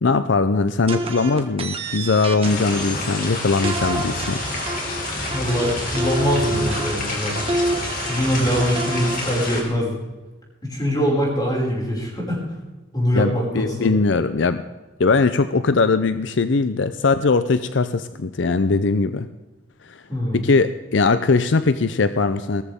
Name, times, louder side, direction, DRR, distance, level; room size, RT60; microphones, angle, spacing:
voice 1, 0.0-4.4 13.1-14.6 15.0-19.3 19.8-20.0 20.3-22.6, left 4 dB, 75° left, 12 dB, 0.6 m, -20 dB
sound 1, 0.9-3.2 3.6-9.3, right 2 dB, 30° right, 1.6 m, -28 dB
sound 2, 2.4-9.6, left 2 dB, 50° left, 3.3 m, -28 dB
voice 2, 5.3-7.4 8.1-10.0 10.6-12.4 12.9-13.9 20.1-20.4, equal, 20° left, -3 dB, 5.9 m, -23 dB
18.5 x 14.0 x 3.6 m, 1.2 s
head